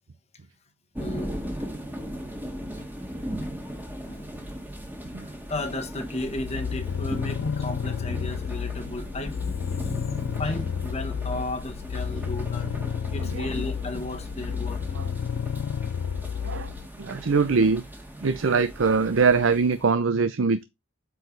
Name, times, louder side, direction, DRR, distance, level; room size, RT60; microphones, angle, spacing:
voice 1, 1.0-1.3 4.0-4.5 5.5-9.4 10.4-12.7 13.1-14.8, left 1 dB, 30° left, 1.2 m, -34 dB
sound 1, 1.0-19.9, equal, 10° right, 1.6 m, -38 dB
sound 2, 6.2-16.9, left 7 dB, 75° left, 0.3 m, -31 dB
voice 2, 17.0-17.8 18.2-20.6, right 4 dB, 70° right, 0.6 m, -22 dB
8.1 x 4.7 x 3.3 m
head